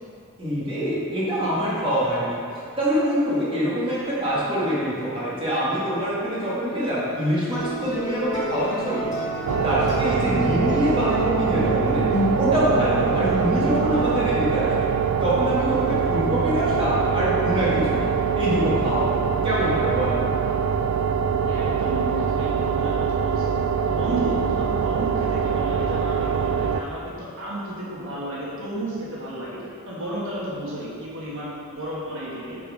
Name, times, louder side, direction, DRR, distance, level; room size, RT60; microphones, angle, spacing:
voice 1, 0.4-2.4 2.8-9.0 9.6-12.1 12.4-14.7 15.2-18.1 18.3-19.2 19.4-20.3, equal, 25° right, -8 dB, 1.5 m, -24 dB
sound 1, 7.5-14.4, equal, 35° left, 1.1 m, -28 dB
sound 2, 9.4-26.8, right 6 dB, 80° right, 0.3 m, -24 dB
voice 2, 21.4-23.5 23.8-29.6 29.9-32.6, right 1 dB, 60° right, -7 dB, 1.4 m, -32 dB
6.5 x 4.1 x 5.0 m, 2.5 s
head